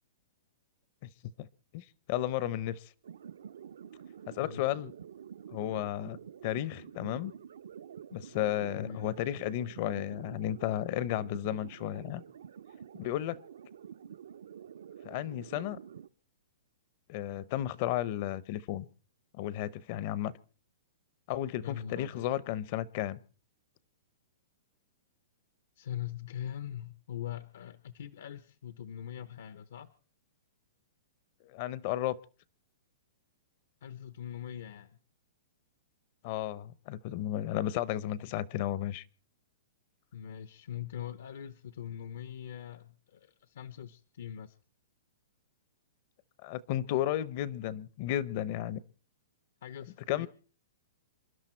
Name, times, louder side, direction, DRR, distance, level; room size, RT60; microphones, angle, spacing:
voice 1, 1.7-2.8 4.3-4.9 5.5-6.2 6.4-7.3 8.1-12.2 13.0-13.4 15.0-15.8 17.1-18.9 19.3-20.3 21.3-23.2 31.5-32.2 36.2-39.0 46.4-48.8 50.1-50.3, left 13 dB, 35° left, 0.7 m, -33 dB
sound 1, 3.0-16.1, right 8 dB, 75° right, 0.7 m, -48 dB
voice 2, 4.4-4.7 8.7-9.2 21.6-22.3 25.8-29.9 33.8-35.0 38.2-38.3 40.1-44.6 49.6-50.3, left 10 dB, 65° left, 0.8 m, -42 dB
28.0 x 11.5 x 4.4 m
hypercardioid pair, 175°, 0 cm